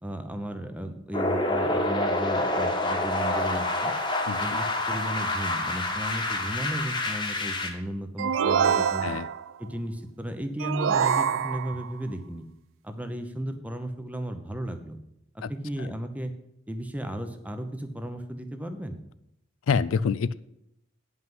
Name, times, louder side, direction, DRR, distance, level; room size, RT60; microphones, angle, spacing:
voice 1, 0.0-3.9 4.4-9.1 9.6-12.5 12.8-15.0 15.3-16.3 16.7-19.0, right 1 dB, 5° right, 7 dB, 0.8 m, -35 dB
sound 1, 1.1-7.7, left 2 dB, 25° left, 1.3 m, -27 dB
voice 2, 4.3-4.6 9.0-9.3 15.4-15.5 19.7-20.3, left 5 dB, 85° left, 15 dB, 0.4 m, -26 dB
sound 2, 8.2-9.5 10.6-11.9, right 7 dB, 75° right, 0.4 m, -25 dB
9.4 x 5.6 x 7.8 m, 0.81 s
head